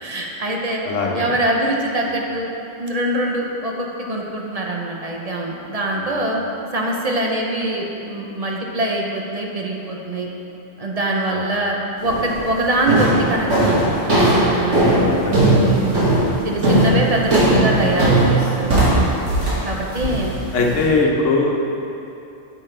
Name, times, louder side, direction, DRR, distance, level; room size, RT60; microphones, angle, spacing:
voice 1, 0.0-0.8 1.1-6.4 6.7-10.3 10.8-14.0 14.4-15.1 15.6-16.1 16.4-18.8 19.6-20.7, right 1 dB, 35° right, -1 dB, 0.8 m, -23 dB
voice 2, 0.8-1.3 6.0-6.2 11.3-11.4 14.8-15.4 20.1-20.2 20.5-21.6, left 3 dB, 85° left, 0 dB, 1.3 m, -21 dB
sound 1, 12.0-12.4 12.9-20.9, right 1 dB, 90° right, 2.3 m, -17 dB
8.6 x 7.5 x 3.3 m, 2.9 s
omnidirectional pair, 1.2 m